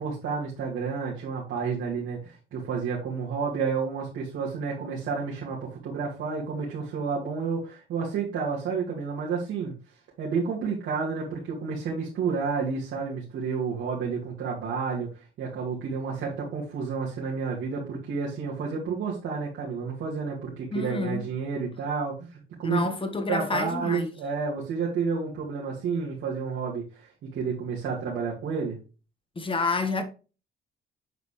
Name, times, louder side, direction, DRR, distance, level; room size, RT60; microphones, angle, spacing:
voice 1, 0.0-9.7 10.2-22.8 23.3-28.8, right 5 dB, 75° right, 2.3 m, -30 dB
voice 2, 20.7-21.2 22.6-24.1 29.3-30.0, left 3 dB, 25° left, 1.5 m, -28 dB
7.8 x 5.4 x 3.2 m
cardioid pair, 90°, 20 cm